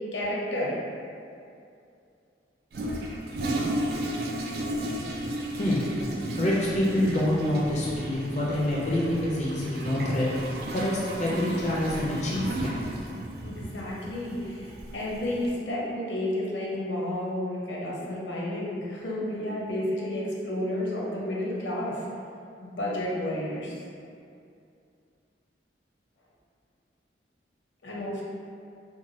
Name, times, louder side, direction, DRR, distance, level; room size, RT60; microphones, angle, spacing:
voice 1, 0.1-0.8 13.4-22.0 22.6-23.7 27.8-28.2, left 1 dB, 85° left, -5 dB, 0.6 m, -31 dB
Toilet flush, 2.7-15.5, right 1 dB, 60° right, 0.3 m, -34 dB
voice 2, 6.4-10.4 10.7-12.8, left 1 dB, 40° left, -5 dB, 0.4 m, -26 dB
3.0 x 2.2 x 2.6 m, 2.5 s
head